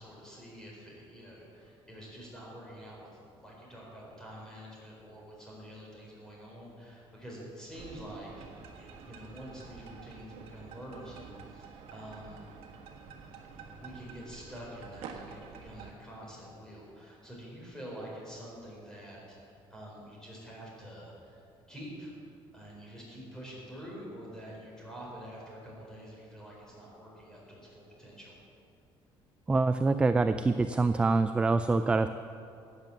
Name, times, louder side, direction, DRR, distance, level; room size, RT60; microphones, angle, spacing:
voice 1, 0.0-8.5 8.8-12.5 13.8-22.1 22.5-28.4, equal, 5° left, -4 dB, 4.4 m, -47 dB
sound 1, 7.7-15.9, right 6 dB, 75° right, 1.5 m, -49 dB
voice 2, 29.5-32.1, right 3 dB, 10° right, 10 dB, 0.3 m, -25 dB
15.0 x 9.3 x 7.3 m, 2.6 s
cardioid pair, 160°, 10 cm